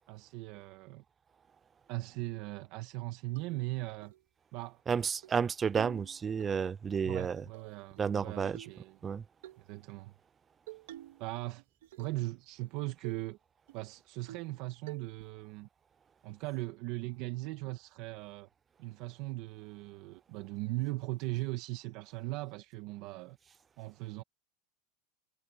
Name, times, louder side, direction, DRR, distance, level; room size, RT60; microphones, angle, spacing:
voice 1, 0.1-1.0 1.9-4.1 4.5-4.8 7.0-9.0 9.6-10.1 11.2-11.6 12.0-13.4 13.7-15.7 16.2-18.5 18.8-23.4 23.8-24.2, right 20 dB, 55° right, 1.5 m, -39 dB
sound 1, 3.4-3.5 4.0-4.2 4.6-4.7 5.0-5.4 5.8-6.5 7.5-8.2 8.5-8.8 9.4-9.6 10.7-11.3 11.6-12.3 12.6-12.7 13.0-13.3 13.7-13.8 14.3-14.6 14.9-15.3, right 15 dB, 85° right, 2.8 m, -49 dB
voice 2, 4.9-7.4 8.0-8.6 9.0-9.2, right 6 dB, 20° right, 0.4 m, -31 dB
supercardioid pair, 150°, 0 cm